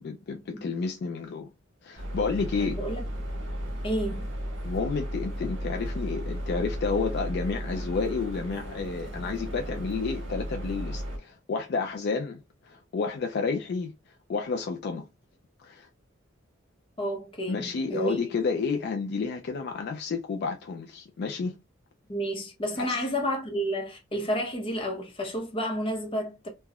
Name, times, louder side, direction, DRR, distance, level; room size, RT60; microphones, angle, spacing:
voice 1, 0.0-1.5 1.8-2.8 4.6-13.9 14.3-15.1 15.6-15.9 17.5-21.6 22.8-23.0, left 4 dB, 55° left, 0.3 m, -31 dB
sound 1, 2.0-11.2, equal, 65° right, 1.4 m, -34 dB
voice 2, 2.6-3.0 3.8-4.3 17.0-18.2 22.1-26.5, equal, 25° left, 0.8 m, -31 dB
3.3 x 2.1 x 2.3 m
head